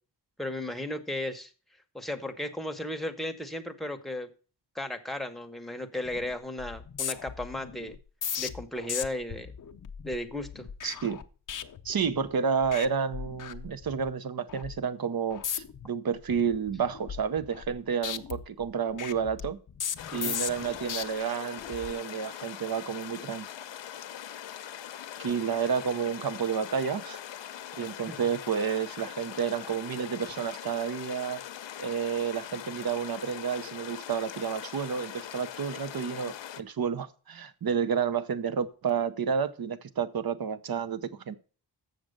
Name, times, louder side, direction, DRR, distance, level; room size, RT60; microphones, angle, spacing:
voice 1, 0.4-1.5 1.9-4.3 4.7-8.0 8.4-9.5 10.0-10.7 20.1-20.4 28.1-28.2, left 1 dB, ahead, 0.9 m, -35 dB
sound 1, 6.0-6.3 6.6-12.3 12.6-12.9 13.1-14.1 14.5-14.8 15.3-15.9 16.3-17.8 18.0-21.0 21.6-21.9, left 8 dB, 45° left, 0.6 m, -37 dB
voice 2, 10.8-11.2 11.8-19.6 20.1-23.5 25.2-27.2 27.8-31.4 31.8-41.4, right 6 dB, 55° right, 0.8 m, -30 dB
sound 2, 20.0-36.6, left 10 dB, 85° left, 0.7 m, -42 dB
7.4 x 6.6 x 6.4 m
wide cardioid pair, 130°, 43 cm